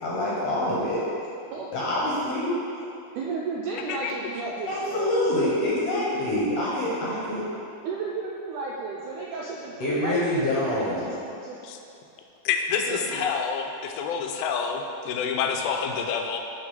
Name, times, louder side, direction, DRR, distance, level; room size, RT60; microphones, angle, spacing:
voice 1, 0.0-1.1 1.7-2.6 4.7-7.4 9.8-11.0, left 1 dB, 65° left, -7 dB, 1.7 m, -26 dB
voice 2, 3.2-5.3 7.8-11.6 12.9-13.3, right 4 dB, 90° right, -4 dB, 1.8 m, -34 dB
voice 3, 12.5-16.4, left 6 dB, 90° left, 4 dB, 2.4 m, -28 dB
7.7 x 3.5 x 5.5 m, 2.7 s
omnidirectional pair, 4.1 m